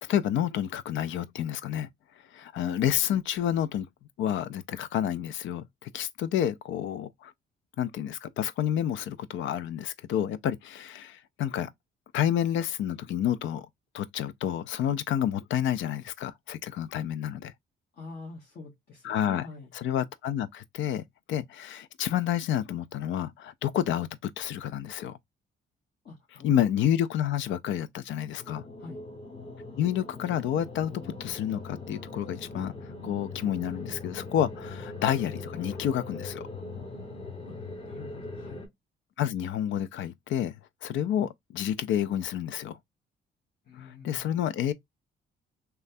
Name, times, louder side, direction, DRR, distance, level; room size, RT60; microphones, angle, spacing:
voice 1, 0.0-1.9 2.3-3.9 4.2-7.3 7.8-11.7 12.1-13.7 13.9-17.5 19.0-19.5 19.7-25.2 26.4-28.6 29.8-30.9 31.2-32.7 33.0-36.4 39.2-42.8 43.8-44.7, left 10 dB, 70° left, 0.4 m, -29 dB
voice 2, 17.9-19.7 26.0-26.5 28.8-29.0 37.5-37.6 37.8-38.7 43.7-44.3, left 4 dB, 55° left, 1.1 m, -45 dB
sound 1, 28.4-38.7, left 3 dB, 25° left, 1.0 m, -41 dB
3.0 x 2.3 x 2.6 m
cardioid pair, 90°, 20 cm